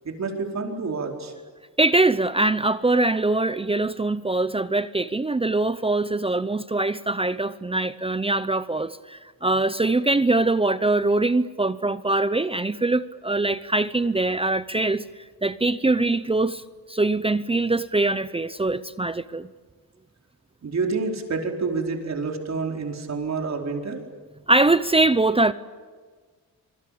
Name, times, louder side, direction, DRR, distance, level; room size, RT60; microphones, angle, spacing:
voice 1, 0.0-1.3 20.6-24.0, right 4 dB, 50° right, 2 dB, 4.7 m, -28 dB
voice 2, 1.8-15.0 15.4-16.6 16.9-19.5 24.5-25.5, right 2 dB, 15° right, 14 dB, 0.7 m, -22 dB
27.0 x 24.0 x 8.5 m, 1.5 s
cardioid pair, 115°, 35 cm